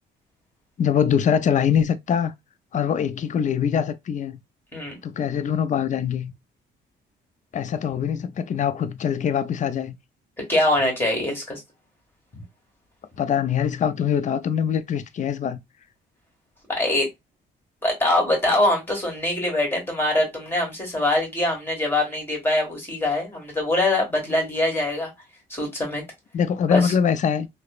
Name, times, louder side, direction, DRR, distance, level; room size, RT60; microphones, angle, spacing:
voice 1, 0.8-2.3 2.7-4.4 5.0-6.3 7.5-10.0 13.2-15.6 26.3-27.5, left 8 dB, 40° left, 0.4 m, -23 dB
voice 2, 10.5-11.6 12.3-12.4 16.7-17.1 17.8-25.1 25.5-26.0 26.7-26.9, left 1 dB, 10° left, 1.6 m, -23 dB
2.9 x 2.0 x 2.3 m
cardioid pair, 90°, 20 cm